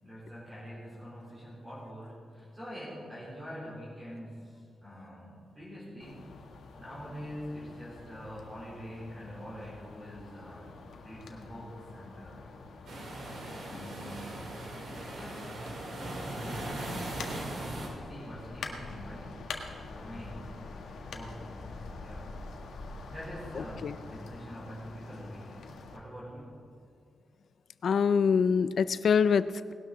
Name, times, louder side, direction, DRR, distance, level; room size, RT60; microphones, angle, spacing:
voice 1, 0.0-6.2 6.8-12.4 13.6-14.4 15.1-17.0 17.3-17.7 18.1-19.4 19.9-20.6 21.1-22.5 23.1-26.6, equal, 20° right, -8 dB, 3.6 m, -45 dB
sound 1, 6.0-26.0, left 3 dB, 80° left, 1.5 m, -46 dB
sound 2, 12.9-17.9, right 1 dB, 70° right, 3.5 m, -39 dB
voice 2, 27.8-29.7, left 6 dB, 55° left, 15 dB, 0.4 m, -25 dB
19.0 x 12.0 x 4.0 m, 2.3 s
wide cardioid pair, 140°, 0 cm